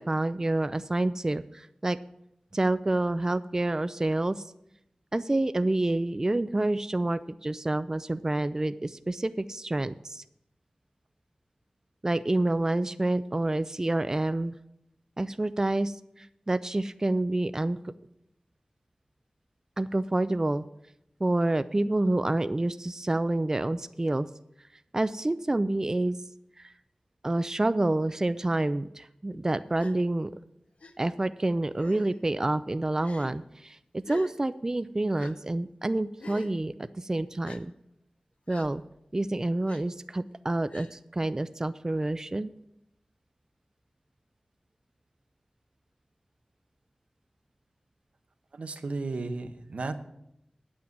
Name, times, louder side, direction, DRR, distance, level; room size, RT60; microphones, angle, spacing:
voice 1, 0.0-2.0 2.5-4.5 5.1-10.2 12.0-14.6 15.2-17.8 19.8-20.6 21.2-24.3 24.9-26.2 26.6-26.7 27.2-30.3 31.0-33.8 34.1-37.7 38.5-38.8 39.1-42.5, right 2 dB, 25° right, 13 dB, 0.4 m, -28 dB
Gasp, 29.8-30.0 30.8-30.9 31.8-32.2 33.0-33.3 34.0-34.3 35.2-35.3 36.2-36.5 37.4-37.6 38.5-38.7 39.7-39.8 40.7-40.9, left 3 dB, 75° left, 0.9 m, -45 dB
voice 2, 48.5-49.9, right 3 dB, 80° right, 8 dB, 1.0 m, -34 dB
9.3 x 8.7 x 7.1 m, 0.81 s
wide cardioid pair, 75°, 2 cm